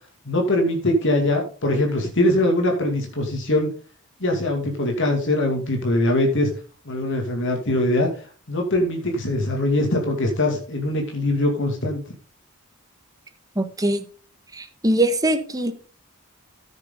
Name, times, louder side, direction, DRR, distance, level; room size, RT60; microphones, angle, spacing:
voice 1, 0.3-3.7 4.2-6.5 6.9-8.1 8.5-12.0, left 1 dB, 60° left, 2 dB, 2.4 m, -22 dB
voice 2, 13.5-14.0 14.5-15.7, right 1 dB, 15° right, 8 dB, 1.4 m, -22 dB
14.5 x 6.6 x 3.8 m, 0.39 s
head